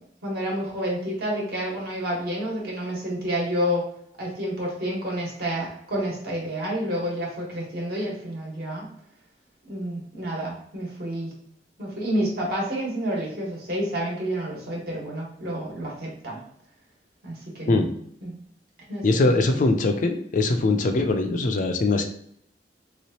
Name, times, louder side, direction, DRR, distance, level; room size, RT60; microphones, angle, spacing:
voice 1, 0.2-3.8 4.2-8.9 9.7-11.3 11.8-16.4 17.2-17.9 18.2-18.4 18.9-19.3, equal, 60° right, -3 dB, 1.3 m, -29 dB
voice 2, 19.0-22.0, left 2 dB, 45° left, 5 dB, 0.4 m, -22 dB
3.3 x 3.0 x 2.8 m, 0.68 s
head